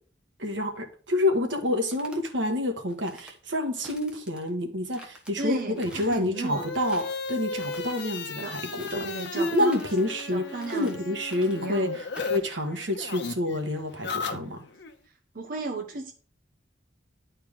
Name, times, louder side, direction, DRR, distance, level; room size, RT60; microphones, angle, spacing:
voice 1, 0.4-9.0 9.3-10.4 10.7-11.9 12.3-14.6, left 1 dB, 85° right, 1.5 m, -28 dB
sound 1, 1.6-2.3 2.9-3.4 3.8-4.5 4.9-5.3 5.8-6.3 6.7-7.2 7.6-8.2 8.8-9.4 9.7-10.3 10.6-11.0 11.3-11.7 12.2-12.5, equal, 5° right, 1.2 m, -50 dB
voice 2, 5.4-6.7 8.4-8.6 8.9-9.8 10.3-11.2 11.6-12.0 15.3-16.1, right 2 dB, 50° right, 0.9 m, -34 dB
sound 2, 5.8-12.4 12.7-14.9, left 4 dB, 65° left, 0.9 m, -36 dB
10.5 x 4.4 x 3.6 m
head